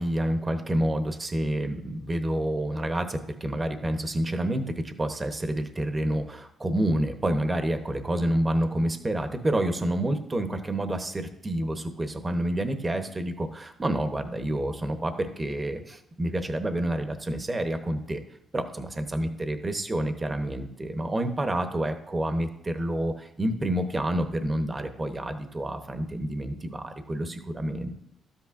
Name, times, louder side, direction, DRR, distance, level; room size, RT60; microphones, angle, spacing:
voice 1, 0.0-18.2 18.5-27.9, right 1 dB, 25° right, 7 dB, 0.9 m, -28 dB
12.5 x 8.3 x 2.5 m, 0.77 s
cardioid pair, 90°, 0 cm